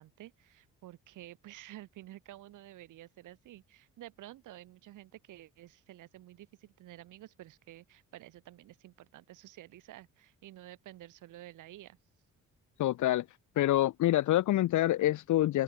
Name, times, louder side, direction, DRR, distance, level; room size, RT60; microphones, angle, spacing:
voice 1, 0.0-12.0, right 15 dB, 85° right, 6.9 m, -51 dB
voice 2, 12.8-13.2 13.6-15.6, left 14 dB, 80° left, 1.4 m, -26 dB
cardioid pair, 90°, 30 cm